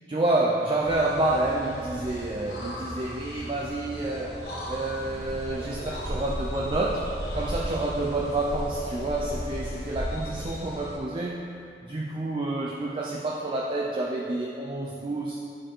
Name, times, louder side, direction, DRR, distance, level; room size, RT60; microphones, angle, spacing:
voice 1, 0.1-11.5 11.8-15.4, right 2 dB, 30° right, -1 dB, 0.4 m, -29 dB
sound 1, 0.8-11.0, equal, 60° left, 1.1 m, -35 dB
9.7 x 4.5 x 3.8 m, 2.5 s
head